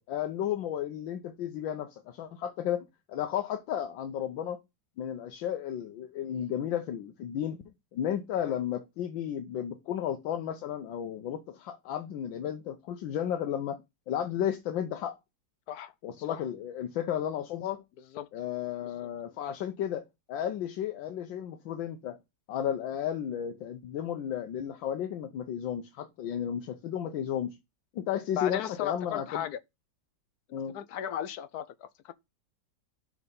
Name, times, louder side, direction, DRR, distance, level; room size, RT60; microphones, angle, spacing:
voice 1, 0.0-4.6 5.0-13.8 14.1-15.2 16.0-17.8 18.3-22.2 22.5-27.5 27.9-29.4 30.5-30.8, left 10 dB, 90° left, 1.5 m, -33 dB
voice 2, 28.4-29.6 30.7-32.1, left 10 dB, 70° left, 1.0 m, -36 dB
6.3 x 4.4 x 5.2 m
omnidirectional pair, 2.0 m